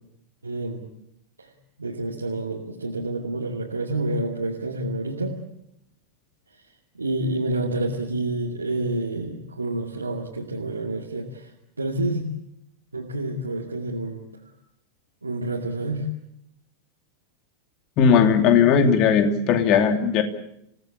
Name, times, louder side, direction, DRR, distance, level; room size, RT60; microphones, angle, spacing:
voice 1, 0.4-0.8 1.8-5.4 7.0-11.5 11.8-12.2 12.9-14.2 15.2-16.1, right 2 dB, 80° right, -2 dB, 2.4 m, -28 dB
voice 2, 18.0-20.2, left 7 dB, 40° left, 7 dB, 2.8 m, -18 dB
28.0 x 17.5 x 8.5 m, 0.79 s
figure-of-eight pair, 90°, 0 cm